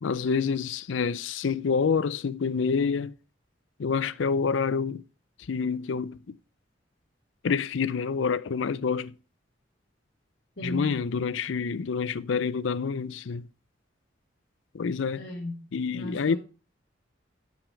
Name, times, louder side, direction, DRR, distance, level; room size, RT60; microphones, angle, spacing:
voice 1, 0.0-3.1 3.8-5.0 5.5-6.2 7.4-9.1 10.6-13.5 14.7-15.2 15.7-16.4, left 5 dB, 80° left, 0.5 m, -27 dB
voice 2, 10.6-11.0 15.2-15.6 15.9-16.4, equal, 50° left, 1.6 m, -35 dB
9.0 x 7.2 x 4.6 m
head